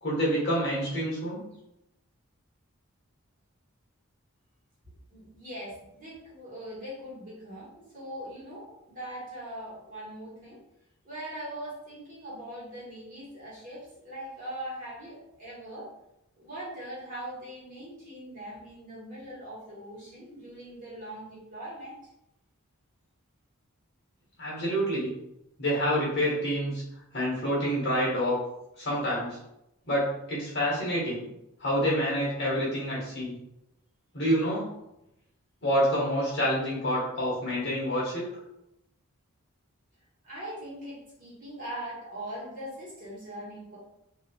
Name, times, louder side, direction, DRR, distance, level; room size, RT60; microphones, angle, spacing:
voice 1, 0.0-1.4 24.4-25.1 25.6-26.8 27.1-28.4 28.8-29.4 29.9-31.2 31.6-33.3 34.1-34.7 35.6-38.3, equal, 50° left, -5 dB, 1.5 m, -27 dB
voice 2, 4.8-10.6 11.0-15.9 16.4-22.0 40.2-43.8, right 1 dB, 40° right, -7 dB, 1.4 m, -41 dB
3.7 x 2.8 x 2.4 m, 0.85 s
head